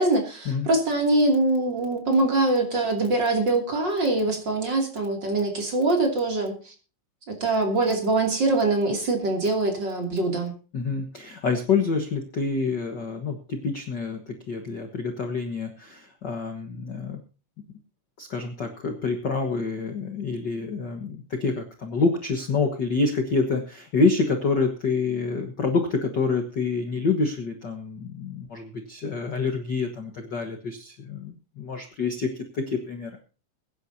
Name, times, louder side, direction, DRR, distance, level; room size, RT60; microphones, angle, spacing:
voice 1, 0.0-6.7 7.3-10.5, right 2 dB, 35° right, 2 dB, 3.2 m, -23 dB
voice 2, 10.7-17.2 18.2-33.1, left 4 dB, 45° left, 5 dB, 1.5 m, -27 dB
22.5 x 10.0 x 2.8 m, 0.35 s
omnidirectional pair, 3.8 m